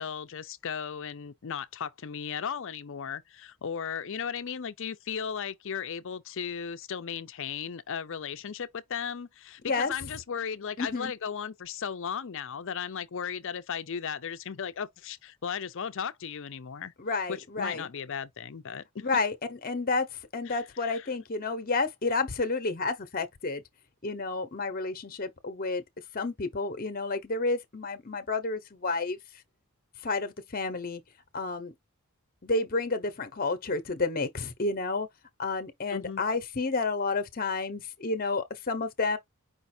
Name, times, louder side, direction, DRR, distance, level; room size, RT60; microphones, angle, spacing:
voice 1, 0.0-16.9 17.3-19.1 20.5-21.1 35.9-36.2, left 7 dB, 60° left, 0.5 m, -36 dB
voice 2, 10.8-11.1 17.0-17.9 19.0-23.6 24.0-25.8 26.1-29.2 30.0-31.0 31.3-31.7 32.4-35.1 35.4-39.2, left 3 dB, 40° left, 0.9 m, -30 dB
5.0 x 2.5 x 4.3 m
head